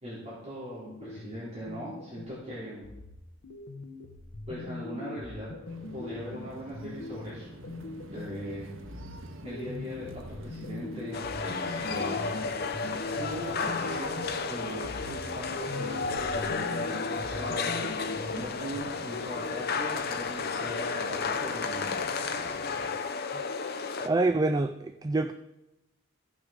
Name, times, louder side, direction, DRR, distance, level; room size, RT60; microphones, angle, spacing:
voice 1, 0.0-2.9 4.5-5.5 5.9-7.5 8.1-8.7 9.4-12.3 13.2-21.9, equal, 35° right, -9 dB, 3.5 m, -40 dB
sound 1, 0.8-2.4 2.8-8.4 8.8-14.5 14.8-18.8, left 2 dB, 65° left, 1.0 m, -41 dB
sound 2, 5.6-23.0, right 2 dB, 80° right, 0.9 m, -48 dB
sound 3, 11.1-24.1, left 4 dB, 50° left, 0.6 m, -32 dB
voice 2, 24.0-25.3, right 2 dB, 20° right, 8 dB, 0.3 m, -26 dB
15.5 x 5.9 x 5.1 m, 0.96 s
head